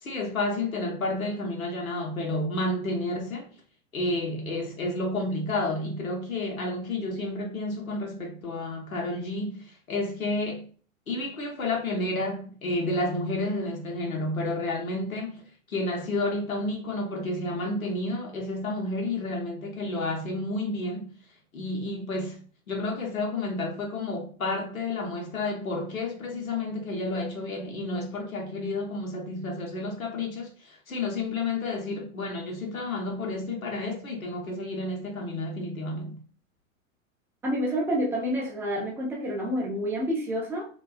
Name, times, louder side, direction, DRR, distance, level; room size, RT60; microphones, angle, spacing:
voice 1, 0.0-3.5 3.9-10.7 11.1-21.1 21.5-36.2, left 2 dB, 90° left, 0.9 m, -31 dB
voice 2, 37.4-40.7, equal, 5° right, 0.3 m, -28 dB
2.4 x 2.3 x 2.3 m
figure-of-eight pair, 95°, 40 cm